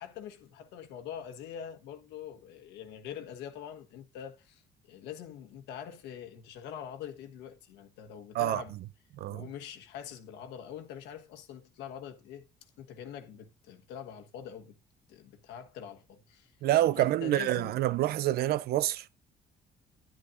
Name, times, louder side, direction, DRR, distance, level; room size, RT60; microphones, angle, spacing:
voice 1, 0.0-4.6 4.9-8.7 9.3-12.5 12.8-14.8 15.1-16.5 17.0-17.8, left 9 dB, 90° left, 1.3 m, -44 dB
voice 2, 16.6-19.2, right 14 dB, 70° right, 0.5 m, -27 dB
11.0 x 10.0 x 2.6 m
cardioid pair, 110°, 17 cm